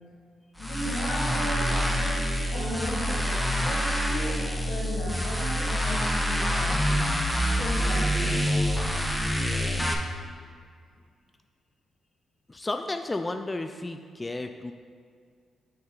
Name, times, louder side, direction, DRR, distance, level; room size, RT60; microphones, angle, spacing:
voice 1, 0.6-2.3 2.5-3.3 3.6-7.0 7.5-8.5, left 1 dB, 85° left, -5 dB, 1.8 m, -36 dB
sound 1, 0.6-9.9, equal, 5° left, 0.7 m, -26 dB
sound 2, 0.7-9.0 9.3-9.4, right 1 dB, 65° right, 1.7 m, -42 dB
voice 2, 12.5-14.7, left 2 dB, 20° left, 7 dB, 0.3 m, -32 dB
6.9 x 5.3 x 3.9 m, 2.1 s
cardioid pair, 80°, 0 cm